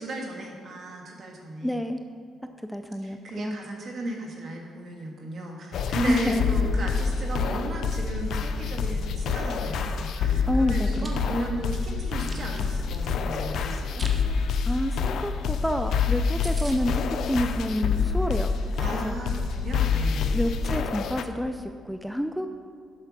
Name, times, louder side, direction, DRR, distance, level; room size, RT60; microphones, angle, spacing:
voice 1, 0.0-1.8 3.0-14.0 18.8-20.4, right 1 dB, 55° right, 1 dB, 1.6 m, -35 dB
voice 2, 1.6-2.0 2.7-3.6 6.1-6.4 10.5-10.9 11.2-11.3 14.7-18.5 19.0-19.2 20.3-22.5, equal, ahead, 7 dB, 0.4 m, -28 dB
sound 1, 5.7-21.2, left 5 dB, 70° left, 0.5 m, -27 dB
Chewing mastication, 10.8-11.1 11.6-13.1 13.7-14.2 14.5-14.7 15.0-15.1 15.4-15.5 15.9-16.0 16.1-16.2 16.4-16.8, right 2 dB, 20° right, 1.2 m, -42 dB
7.7 x 5.7 x 5.9 m, 2.2 s
cardioid pair, 90°, 0 cm